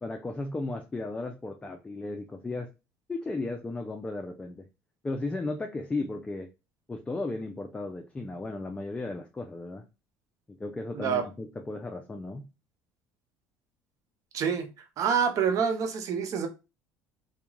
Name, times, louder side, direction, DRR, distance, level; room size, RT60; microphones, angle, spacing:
voice 1, 0.0-2.7 3.1-4.7 5.0-6.5 6.9-9.9 10.6-12.5, left 2 dB, 15° left, 0.4 m, -35 dB
voice 2, 14.3-14.7 15.0-16.5, right 7 dB, 55° right, 0.7 m, -26 dB
2.3 x 2.2 x 3.0 m
supercardioid pair, 85°, 7 cm